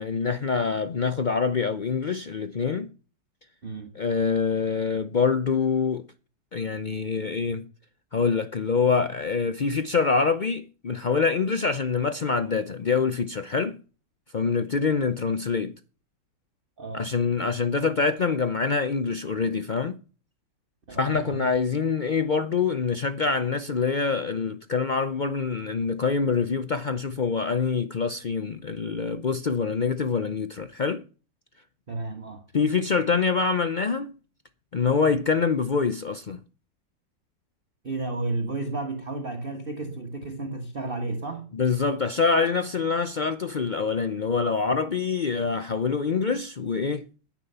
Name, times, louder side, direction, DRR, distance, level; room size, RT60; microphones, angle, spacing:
voice 1, 0.0-2.9 3.9-6.0 6.5-7.6 8.1-13.8 14.3-15.7 16.9-20.0 20.9-31.0 32.5-34.1 34.7-36.4 41.5-47.0, left 5 dB, 80° left, 0.4 m, -25 dB
voice 2, 16.8-17.1 20.9-21.4 31.9-32.4 37.8-41.5, right 2 dB, 30° right, 1.5 m, -32 dB
10.0 x 9.8 x 5.5 m
omnidirectional pair, 1.9 m